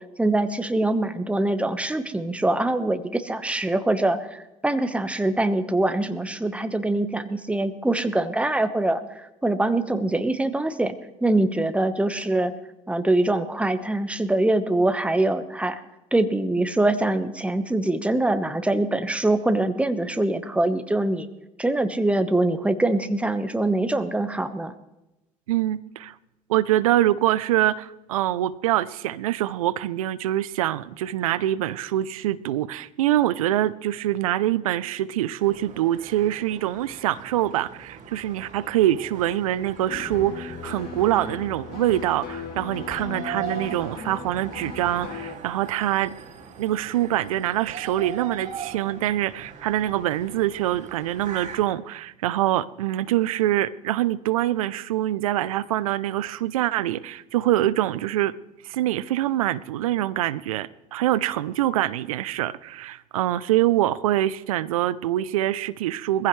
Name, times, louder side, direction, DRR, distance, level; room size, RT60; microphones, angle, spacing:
voice 1, 0.2-10.9 11.2-12.5 12.9-15.8 16.1-21.3 21.6-24.7, right 2 dB, 5° right, 10 dB, 1.2 m, -23 dB
voice 2, 25.5-26.1 26.5-46.1 46.6-58.3 58.6-66.3, right 13 dB, 85° right, 18 dB, 0.5 m, -24 dB
sound 1, 35.4-51.6, right 6 dB, 45° right, 2.5 m, -41 dB
sound 2, 39.9-45.4, left 6 dB, 60° left, 2.1 m, -37 dB
21.5 x 15.5 x 3.2 m, 0.98 s
hypercardioid pair, 70°, 17 cm